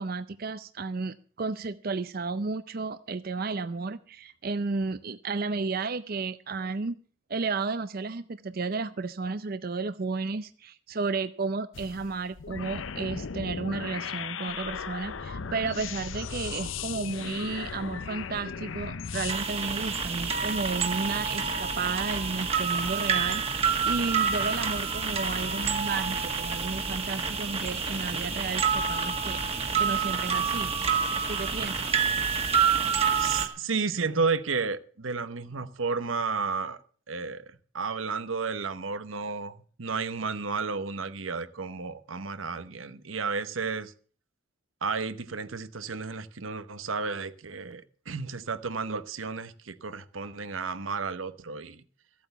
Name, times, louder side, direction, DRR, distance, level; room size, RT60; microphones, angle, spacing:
voice 1, 0.0-7.0 7.3-31.0 31.3-31.9, right 4 dB, 50° right, 0.5 m, -33 dB
sound 1, 11.7-19.3, left 6 dB, 80° left, 0.7 m, -37 dB
sound 2, 19.3-33.5, right 6 dB, 30° right, 1.7 m, -28 dB
voice 2, 33.2-36.8 37.1-43.9 44.8-51.8, right 4 dB, 90° right, 1.0 m, -32 dB
14.5 x 8.6 x 6.9 m
head